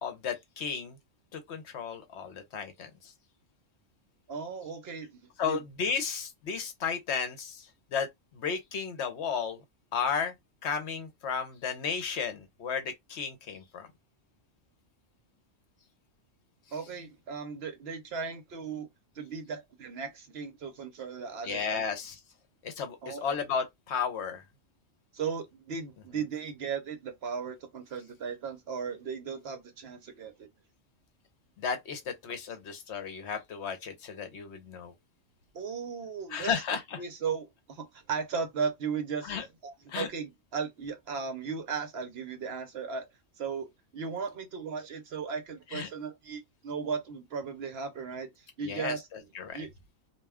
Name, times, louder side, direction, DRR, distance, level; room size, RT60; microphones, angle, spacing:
voice 1, 0.0-1.0 1.3-3.1 5.4-8.1 8.3-9.6 9.9-10.3 10.6-13.9 21.4-22.1 22.6-24.4 31.6-34.9 36.3-37.0 39.2-39.5 39.9-40.1 45.7-45.9 48.6-49.6, left 6 dB, 65° left, 0.9 m, -34 dB
voice 2, 4.3-5.6 16.7-18.9 19.1-21.8 23.0-23.3 25.1-30.5 35.5-36.5 37.0-39.3 39.6-43.1 43.4-43.7 43.9-49.1 49.5-49.7, right 5 dB, 60° right, 0.8 m, -36 dB
2.4 x 2.2 x 3.3 m
omnidirectional pair, 1.3 m